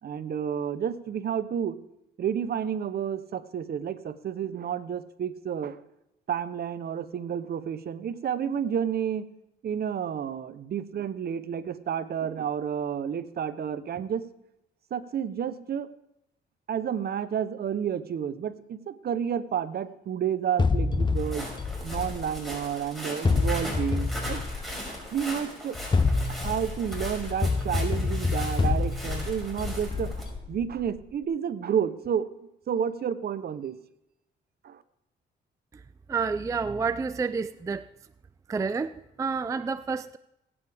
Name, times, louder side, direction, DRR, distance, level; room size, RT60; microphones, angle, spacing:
voice 1, 0.0-1.8 2.2-5.8 6.3-9.3 9.6-14.2 14.9-15.9 16.7-21.5 21.8-24.4 25.1-25.8 26.3-30.1 30.5-32.3 32.7-33.8 34.6-34.8, right 8 dB, 50° right, 13 dB, 0.8 m, -30 dB
sound 1, 20.6-22.7 23.2-25.1 25.7-30.8, left 4 dB, 25° left, 0.7 m, -27 dB
Walk footsteps, 21.2-30.2, equal, ahead, 5.4 m, -39 dB
voice 2, 36.1-37.9 38.5-40.2, right 5 dB, 15° right, 13 dB, 0.3 m, -29 dB
20.0 x 8.7 x 3.5 m, 0.84 s
cardioid pair, 90°, 20 cm